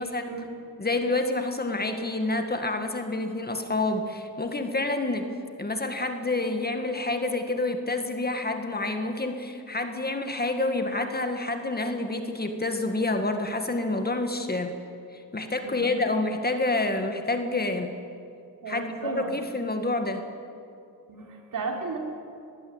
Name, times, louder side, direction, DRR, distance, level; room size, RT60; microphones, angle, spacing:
voice 1, 0.0-0.6 15.6-15.9 18.6-19.3 21.1-22.0, right 4 dB, 55° right, 1 dB, 4.0 m, -35 dB
voice 2, 0.8-5.3 5.6-14.7 15.1-17.9 18.7-20.2, left 2 dB, 25° left, 5 dB, 1.9 m, -28 dB
21.5 x 16.0 x 9.0 m, 2.6 s
cardioid pair, 95°, 39 cm